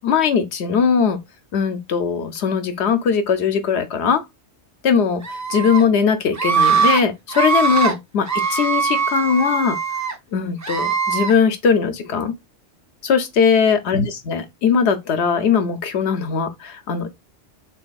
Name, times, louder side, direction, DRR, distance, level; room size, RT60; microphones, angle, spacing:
voice 1, 0.0-1.2 1.5-4.2 4.8-5.2 5.5-9.8 10.3-12.3 13.0-17.1, left 6 dB, 75° left, 0.9 m, -19 dB
Screaming, 5.2-5.8 6.3-7.0 7.3-7.9 8.3-10.1 10.6-11.3, right 6 dB, 25° right, 0.3 m, -21 dB
3.9 x 3.3 x 2.3 m
omnidirectional pair, 1.2 m